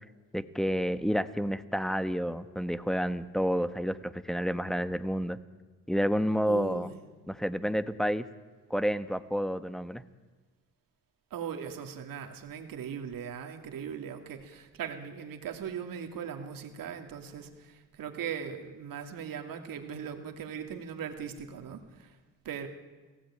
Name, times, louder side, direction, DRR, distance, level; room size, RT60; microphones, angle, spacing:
voice 1, 0.3-5.4 5.9-6.9 7.3-8.2 8.7-10.0, equal, ahead, 11 dB, 1.3 m, -29 dB
voice 2, 6.5-7.0 11.3-22.2 22.4-22.7, right 8 dB, 80° right, 5 dB, 2.7 m, -39 dB
29.5 x 17.0 x 8.9 m, 1.4 s
cardioid pair, 80°, 33 cm